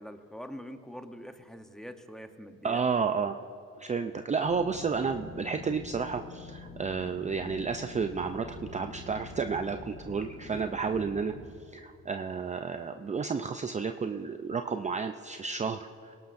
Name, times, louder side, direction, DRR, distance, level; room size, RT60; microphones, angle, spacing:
voice 1, 0.0-2.8 10.5-10.7, equal, ahead, 7 dB, 0.9 m, -44 dB
voice 2, 2.6-3.4 3.8-11.3 11.7-16.1, right 5 dB, 25° right, 7 dB, 0.5 m, -31 dB
sound 1, 4.5-11.5, left 3 dB, 70° left, 3.8 m, -46 dB
20.5 x 17.5 x 2.6 m, 2.8 s
cardioid pair, 90°, 30 cm